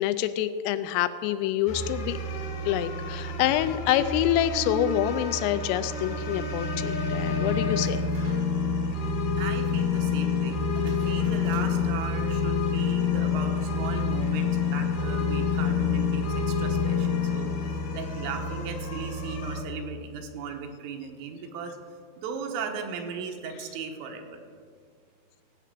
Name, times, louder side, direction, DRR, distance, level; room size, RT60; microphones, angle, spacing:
voice 1, 0.0-2.2 2.7-8.0, left 12 dB, 85° left, 12 dB, 3.0 m, -26 dB
sound 1, 1.7-19.6, left 4 dB, 65° left, 1.8 m, -28 dB
sound 2, 7.8-8.7 9.0-9.1 10.7-12.1, right 2 dB, 50° right, 1.1 m, -45 dB
voice 2, 9.4-21.8 22.2-24.4, right 6 dB, 80° right, 4 dB, 3.7 m, -37 dB
16.5 x 8.6 x 6.7 m, 2.1 s
omnidirectional pair, 5.9 m